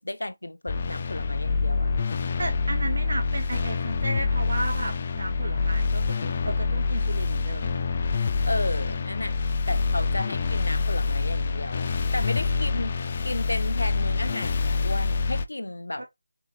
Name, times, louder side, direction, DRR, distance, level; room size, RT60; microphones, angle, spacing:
voice 1, 0.0-1.9 8.4-9.4 9.7-16.1, left 1 dB, 85° left, 0.5 m, -33 dB
sound 1, 0.7-15.4, left 4 dB, 35° left, 0.3 m, -26 dB
voice 2, 2.4-7.8 16.0-16.1, right 2 dB, 70° right, 0.7 m, -34 dB
3.9 x 3.3 x 3.1 m
figure-of-eight pair, 165°, 0 cm